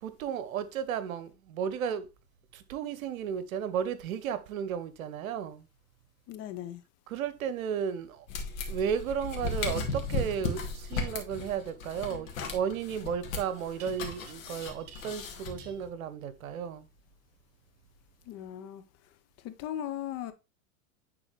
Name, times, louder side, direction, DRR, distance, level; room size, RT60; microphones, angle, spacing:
voice 1, 0.0-2.1 2.5-5.7 7.1-8.3 8.7-16.9, right 8 dB, 65° right, 0.9 m, -34 dB
voice 2, 6.3-6.8 18.3-18.8 19.4-20.3, left 11 dB, 35° left, 0.8 m, -38 dB
sound 1, 8.3-15.9, left 3 dB, 65° left, 1.9 m, -36 dB
sound 2, 10.9-11.1 13.8-14.3 14.6-15.3 15.6-15.8, right 9 dB, 40° right, 1.5 m, -52 dB
9.8 x 3.8 x 3.1 m
hypercardioid pair, 100°, 44 cm